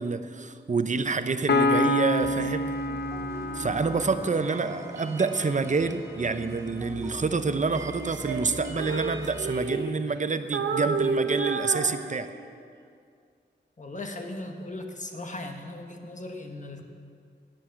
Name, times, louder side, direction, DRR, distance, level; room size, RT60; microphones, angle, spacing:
voice 1, 0.0-2.7 3.5-12.3, right 4 dB, 45° right, 10 dB, 0.6 m, -27 dB
Piano, 1.5-5.1, left 2 dB, 70° left, 0.8 m, -27 dB
sound 1, 2.2-9.6, equal, 15° right, 1.8 m, -41 dB
Female singing, 8.0-10.2 10.5-12.6, right 4 dB, 90° right, 0.8 m, -30 dB
voice 2, 13.8-16.8, left 2 dB, 45° left, 4 dB, 1.3 m, -38 dB
11.0 x 9.5 x 7.7 m, 2.3 s
wide cardioid pair, 105°, 18 cm